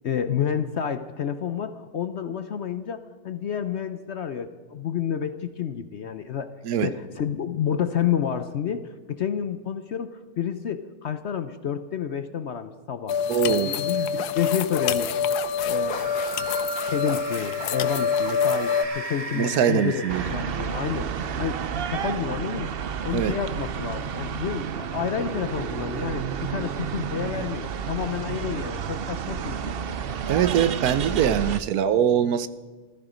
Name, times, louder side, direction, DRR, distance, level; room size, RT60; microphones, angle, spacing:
voice 1, 0.0-6.5 6.8-8.8 9.1-13.2 13.5-15.2 15.6-16.0 16.9-21.6 21.9-29.7, left 8 dB, 60° left, 10 dB, 0.8 m, -29 dB
sound 1, 13.1-18.9, left 6 dB, 80° left, 1.2 m, -26 dB
voice 2, 13.3-13.7 19.3-20.2 23.1-23.3 30.3-32.5, right 9 dB, 75° right, 13 dB, 1.2 m, -22 dB
sound 2, 15.9-21.1, right 3 dB, 25° right, 1.2 m, -36 dB
sound 3, 20.1-31.6, right 7 dB, 55° right, 0.6 m, -31 dB
14.5 x 14.5 x 5.1 m, 1.3 s
omnidirectional pair, 1.7 m